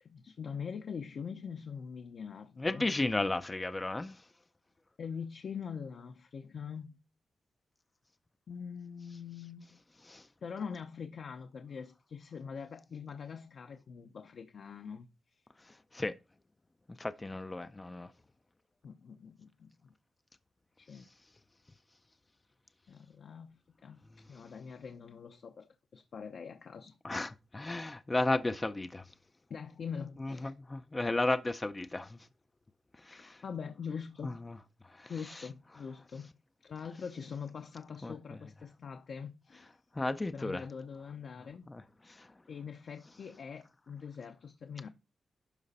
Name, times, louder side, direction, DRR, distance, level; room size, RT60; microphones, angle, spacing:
voice 1, 0.0-2.8 5.0-7.0 8.5-9.8 10.4-15.1 18.8-19.9 20.8-21.1 22.9-24.0 24.3-27.0 29.5-30.5 33.1-34.4 35.1-36.3 36.6-39.8 40.3-41.7 42.5-44.9, left 6 dB, 60° left, 0.7 m, -43 dB
voice 2, 2.6-4.2 10.1-10.2 15.9-16.1 17.0-18.1 27.0-29.0 30.2-32.2 33.0-33.4 34.2-34.3 35.0-35.1 38.0-38.1 40.0-40.6 41.7-42.3, left 2 dB, 15° left, 0.4 m, -34 dB
12.0 x 5.0 x 4.2 m
wide cardioid pair, 165°, 0 cm